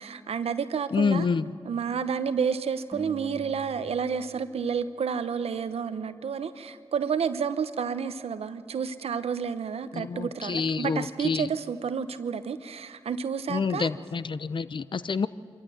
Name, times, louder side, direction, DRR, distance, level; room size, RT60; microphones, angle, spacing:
voice 1, 0.0-1.3 1.6-13.9, right 6 dB, 80° right, 12 dB, 0.8 m, -30 dB
voice 2, 0.9-1.5 9.9-11.5 13.5-15.3, left 5 dB, 50° left, 15 dB, 0.6 m, -27 dB
sound 1, 2.9-5.5, equal, 15° right, 1.8 m, -46 dB
26.0 x 13.5 x 7.8 m, 2.3 s
cardioid pair, 45°, 10 cm